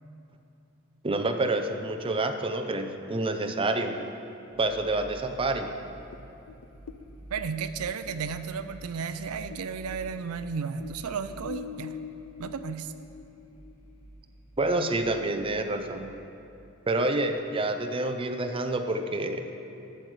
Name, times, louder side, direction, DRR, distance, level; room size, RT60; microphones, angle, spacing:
voice 1, 1.0-4.0 4.6-5.7 14.6-16.1 16.9-19.4, right 2 dB, 25° right, 6 dB, 0.6 m, -28 dB
sound 1, 4.5-16.3, right 1 dB, 30° left, 2.0 m, -49 dB
sound 2, 6.1-9.7 9.9-14.0, left 7 dB, 75° left, 0.4 m, -44 dB
voice 2, 7.3-11.9 12.4-12.9, right 6 dB, 80° right, 10 dB, 0.4 m, -33 dB
8.8 x 6.2 x 8.1 m, 2.9 s
head